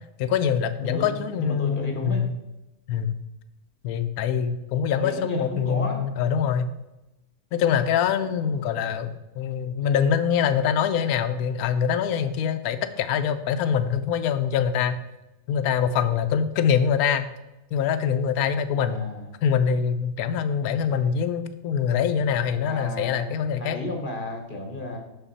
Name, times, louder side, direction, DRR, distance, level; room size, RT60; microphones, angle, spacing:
voice 1, 0.2-2.3 2.9-3.2 3.8-6.7 7.5-14.9 15.5-17.2 17.7-19.0 19.4-23.8, left 7 dB, 70° left, 11 dB, 1.0 m, -24 dB
voice 2, 0.8-2.3 4.9-6.0 8.2-8.8 18.7-19.2 22.6-25.0, left 1 dB, 35° left, 2 dB, 1.0 m, -33 dB
6.3 x 5.8 x 4.0 m, 0.98 s
omnidirectional pair, 1.7 m